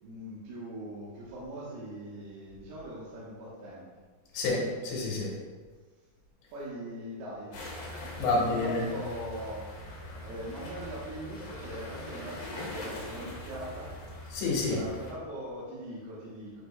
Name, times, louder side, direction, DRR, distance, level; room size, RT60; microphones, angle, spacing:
voice 1, 0.0-3.9 6.5-7.7 8.2-9.7 10.2-14.0 14.7-16.6, right 1 dB, 70° right, -7 dB, 2.8 m, -41 dB
voice 2, 4.3-5.3 8.2-8.8 14.3-14.8, left 2 dB, 85° left, -5 dB, 3.4 m, -28 dB
sound 1, 7.5-15.1, left 1 dB, 60° left, 2.8 m, -42 dB
9.3 x 5.8 x 2.2 m, 1.4 s
omnidirectional pair, 4.9 m